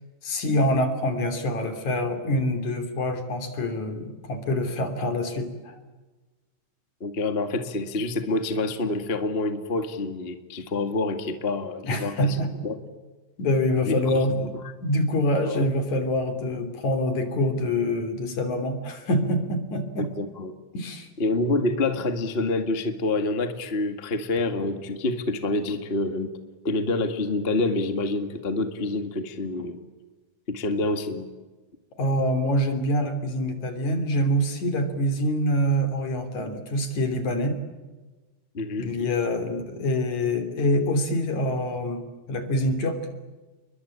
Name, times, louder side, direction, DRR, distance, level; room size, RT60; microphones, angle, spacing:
voice 1, 0.2-5.8 11.8-12.5 13.4-14.5 14.8-20.1 20.7-21.1 32.0-37.6 38.8-42.0 42.3-43.0, left 1 dB, 65° left, 8 dB, 4.5 m, -25 dB
voice 2, 7.0-12.8 13.9-14.3 15.4-15.7 20.0-20.5 21.2-26.3 26.6-29.8 30.5-31.3 38.5-39.1, left 2 dB, 25° left, 8 dB, 1.7 m, -27 dB
29.5 x 23.0 x 8.7 m, 1.2 s
omnidirectional pair, 3.6 m